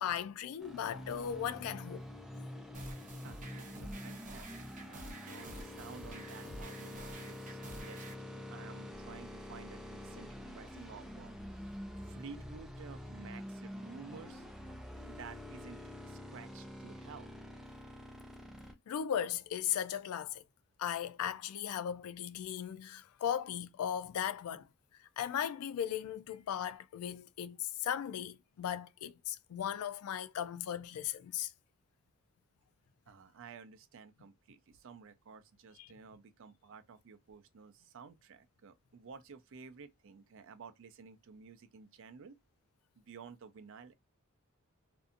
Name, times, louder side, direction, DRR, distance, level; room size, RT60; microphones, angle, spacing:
voice 1, 0.0-2.1 18.9-20.4 20.8-24.7 25.2-31.5 35.8-35.9, left 9 dB, 75° left, 0.3 m, -37 dB
sound 1, 0.6-18.7, left 1 dB, ahead, 0.4 m, -47 dB
sound 2, 2.7-8.1, right 2 dB, 35° right, 0.7 m, -49 dB
voice 2, 3.2-11.3 12.0-14.5 15.1-17.3 33.1-42.4 43.0-43.9, right 5 dB, 60° right, 0.4 m, -53 dB
2.6 x 2.4 x 2.4 m
head